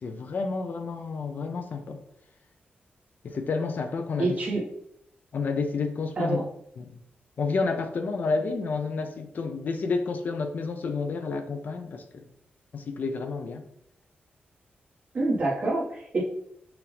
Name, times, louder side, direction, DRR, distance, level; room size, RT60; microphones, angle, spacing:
voice 1, 0.0-2.0 3.2-4.4 5.3-6.4 6.8-7.0 7.4-12.3 12.7-13.6, left 4 dB, 50° left, 0.5 m, -30 dB
voice 2, 4.2-4.6 6.2-6.4 15.1-16.2, right 2 dB, 40° right, 1.5 m, -26 dB
5.7 x 2.5 x 3.4 m
wide cardioid pair, 150°, 4 cm